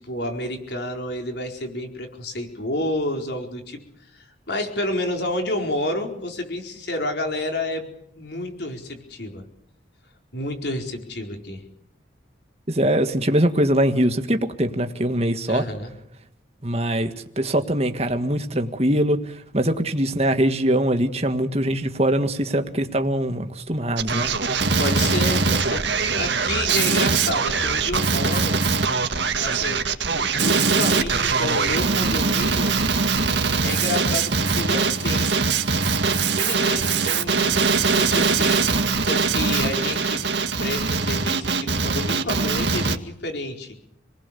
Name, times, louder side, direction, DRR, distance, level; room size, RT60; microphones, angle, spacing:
voice 1, 0.0-3.8 4.1-7.9 8.2-9.4 10.3-11.6 15.5-15.9 24.8-28.6 29.4-29.8 30.1-32.8 33.6-35.4 36.4-38.6 39.1-40.2 40.6-43.7, left 1 dB, 60° left, 3 dB, 4.6 m, -30 dB
voice 2, 12.7-15.6 16.6-24.3, right 1 dB, 35° right, 7 dB, 1.8 m, -22 dB
Male speech man speaking, 24.0-43.0, right 4 dB, 70° right, 1.9 m, -22 dB
28.5 x 19.5 x 7.0 m, 0.76 s
head